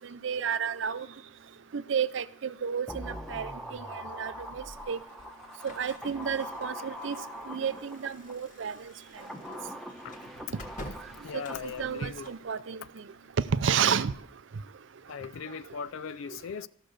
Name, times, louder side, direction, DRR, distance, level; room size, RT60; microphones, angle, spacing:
voice 1, 0.2-1.1 1.7-5.0 5.6-7.2 7.5-8.7 11.3-12.8 13.5-14.1, right 7 dB, 65° right, 0.5 m, -31 dB
sound 1, 2.9-8.3 9.0-12.2 12.5-12.6, equal, ahead, 0.9 m, -43 dB
sound 2, 5.6-12.5, left 1 dB, 40° left, 1.5 m, -49 dB
voice 2, 11.2-12.3 15.1-16.7, left 6 dB, 80° left, 0.4 m, -39 dB
14.0 x 6.6 x 6.5 m
head